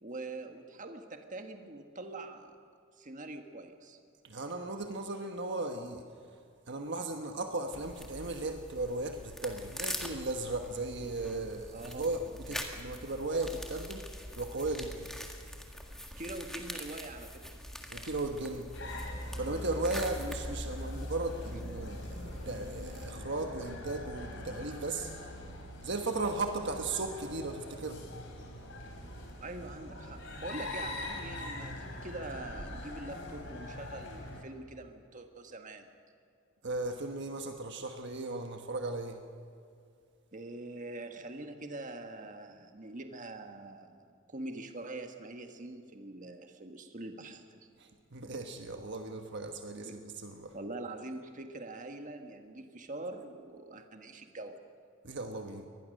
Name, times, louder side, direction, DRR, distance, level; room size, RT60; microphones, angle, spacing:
voice 1, 0.0-2.5 3.0-4.0 11.7-12.1 16.2-17.4 19.9-20.2 29.4-35.9 40.3-47.7 49.8-49.9 50.5-54.6, right 2 dB, 35° right, 5 dB, 1.6 m, -44 dB
voice 2, 4.2-6.0 6.7-14.0 14.3-15.1 17.9-18.7 19.3-22.2 22.5-25.1 25.8-28.0 36.6-39.2 47.8-50.5 55.0-55.7, right 2 dB, 55° right, 5 dB, 1.3 m, -36 dB
sound 1, 7.7-23.1, equal, ahead, 1.8 m, -44 dB
sound 2, 18.7-34.4, left 1 dB, 60° left, 4.0 m, -42 dB
23.5 x 19.5 x 6.6 m, 2.3 s
head